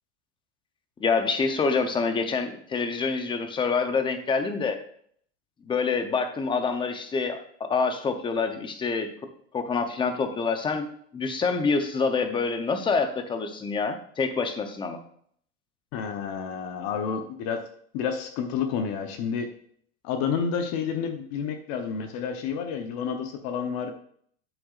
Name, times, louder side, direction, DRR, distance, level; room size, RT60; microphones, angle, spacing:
voice 1, 1.0-4.8 5.6-9.1 9.5-10.9 11.1-15.0, left 4 dB, 15° left, 8 dB, 0.7 m, -26 dB
voice 2, 15.9-17.6 17.9-19.5 20.0-23.9, left 6 dB, 50° left, 6 dB, 0.9 m, -30 dB
8.0 x 7.7 x 2.4 m, 0.62 s
supercardioid pair, 140°, 32 cm